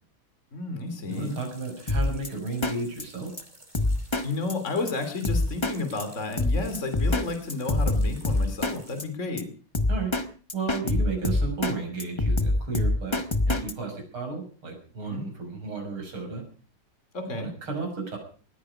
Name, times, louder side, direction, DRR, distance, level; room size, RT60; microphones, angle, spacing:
voice 1, 0.5-1.4 4.2-9.5 15.0-15.2 17.1-17.5, left 3 dB, 35° left, 7 dB, 3.3 m, -31 dB
sound 1, 1.1-9.1, right 1 dB, 20° right, 3.4 m, -52 dB
voice 2, 1.1-3.3 9.9-10.1 10.5-16.4 17.2-18.2, right 4 dB, 85° right, 3 dB, 6.8 m, -33 dB
Drum kit, 1.9-2.3 2.6-2.7 3.0-3.1 3.4-3.5 3.7-4.2 4.5-4.6 4.9-5.0 5.2-5.7 6.0-6.1 6.4-7.2 7.5-8.7 9.0-9.1 9.4-9.5 9.7-10.2 10.5-11.7 12.0-13.7, left 2 dB, 20° left, 0.9 m, -24 dB
20.0 x 14.5 x 4.9 m, 0.40 s
omnidirectional pair, 2.3 m